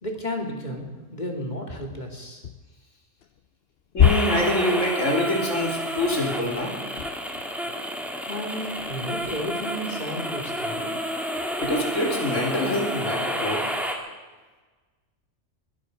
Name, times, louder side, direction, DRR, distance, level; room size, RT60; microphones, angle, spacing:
voice 1, 0.0-2.4 8.2-11.0, equal, 35° left, 2 dB, 2.7 m, -33 dB
sound 1, 1.9-2.8 3.2-3.5 3.9-5.5 6.8-7.8 8.6-9.9, left 8 dB, 60° left, 0.8 m, -27 dB
voice 2, 3.9-6.8 11.6-13.6, left 1 dB, 85° left, -1 dB, 3.7 m, -25 dB
sound 2, 4.0-13.9, equal, ahead, 1.8 m, -30 dB
22.0 x 12.0 x 5.2 m, 1.3 s
omnidirectional pair, 1.3 m